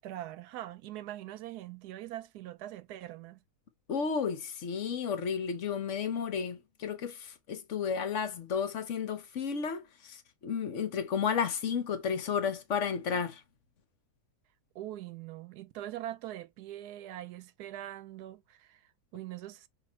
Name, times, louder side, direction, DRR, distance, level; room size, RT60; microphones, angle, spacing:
voice 1, 0.0-3.4 14.7-18.8 19.1-19.7, right 13 dB, 85° right, 1.1 m, -42 dB
voice 2, 3.9-10.2 10.4-13.4, left 6 dB, 55° left, 1.0 m, -32 dB
5.7 x 2.8 x 3.0 m
omnidirectional pair, 1.6 m